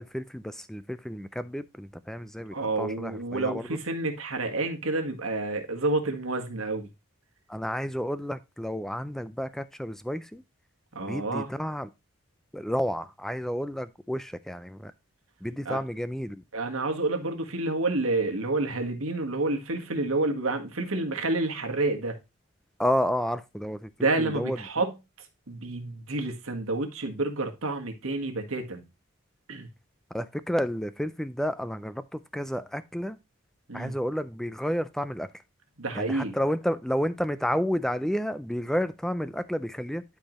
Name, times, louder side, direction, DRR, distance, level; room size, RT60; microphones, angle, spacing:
voice 1, 0.0-3.8 7.5-10.4 11.1-11.9 12.5-14.9 15.4-16.4 22.8-23.9 24.2-24.6 30.1-33.2 33.7-35.3 36.0-40.0, equal, ahead, 0.3 m, -31 dB
voice 2, 2.5-6.9 10.9-11.5 15.6-15.8 16.5-22.2 24.0-24.9 25.5-28.8 29.5-29.7 33.7-33.9 35.8-36.3, right 2 dB, 80° right, 1.6 m, -29 dB
11.5 x 4.7 x 3.1 m
head